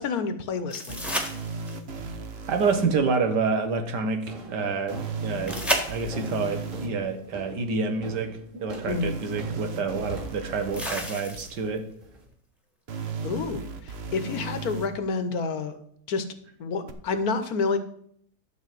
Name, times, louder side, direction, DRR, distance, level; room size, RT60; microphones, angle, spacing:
voice 1, 0.0-1.4 8.9-9.2 13.2-15.8 16.1-16.2 16.6-17.8, left 4 dB, 65° left, 9 dB, 1.4 m, -29 dB
sound 1, 0.7-2.0 5.5-6.5 8.4-8.5 10.7-11.8 14.7-14.8, equal, ahead, 1.5 m, -31 dB
sound 2, 0.9-2.9 4.9-6.9 8.9-10.9 12.9-14.9 16.9-17.0, right 3 dB, 45° right, 1.1 m, -35 dB
voice 2, 2.5-5.6 5.9-11.9, right 4 dB, 90° right, 7 dB, 1.8 m, -28 dB
sound 3, 3.4-3.8 4.3-12.2, right 1 dB, 25° right, 2.4 m, -43 dB
12.0 x 4.1 x 7.6 m, 0.65 s
omnidirectional pair, 1.8 m